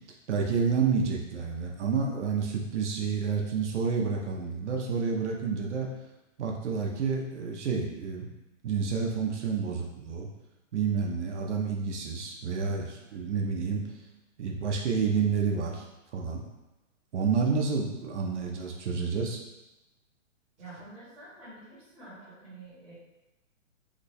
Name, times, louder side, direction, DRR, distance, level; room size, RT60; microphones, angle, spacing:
voice 1, 0.3-5.9 6.4-8.3 8.6-10.3 10.7-13.8 14.4-15.8 16.1-16.4 17.1-19.4, right 5 dB, 60° right, 0 dB, 0.7 m, -29 dB
voice 2, 20.6-22.9, right 2 dB, 5° right, -16 dB, 0.7 m, -48 dB
3.0 x 2.2 x 4.0 m, 0.99 s
hypercardioid pair, 170°, 39 cm